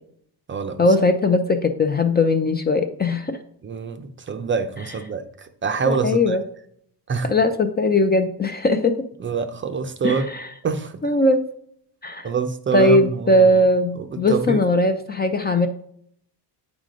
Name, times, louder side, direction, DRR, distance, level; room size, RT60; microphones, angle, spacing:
voice 1, 0.8-3.4 5.9-6.4 7.2-8.9 10.0-10.5 11.0-11.4 12.0-12.3 12.7-15.7, left 1 dB, 25° left, 7 dB, 0.4 m, -19 dB
voice 2, 3.6-6.4 7.1-7.3 9.2-10.3 10.6-11.0 12.2-13.5 14.0-14.6, right 5 dB, 30° right, 8 dB, 0.5 m, -25 dB
8.2 x 4.9 x 3.8 m, 0.68 s
cardioid pair, 130°, 43 cm